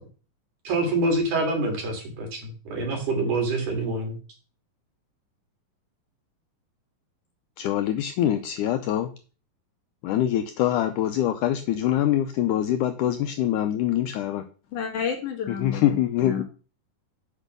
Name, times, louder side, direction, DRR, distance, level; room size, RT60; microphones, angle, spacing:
voice 1, 0.6-4.2, right 2 dB, 55° right, 1 dB, 4.1 m, -26 dB
voice 2, 7.6-9.1 10.0-14.4 15.6-16.4, left 11 dB, 85° left, 8 dB, 1.8 m, -24 dB
voice 3, 14.7-16.4, left 7 dB, 60° left, 2 dB, 2.9 m, -31 dB
8.3 x 5.4 x 6.7 m, 0.36 s
omnidirectional pair, 4.2 m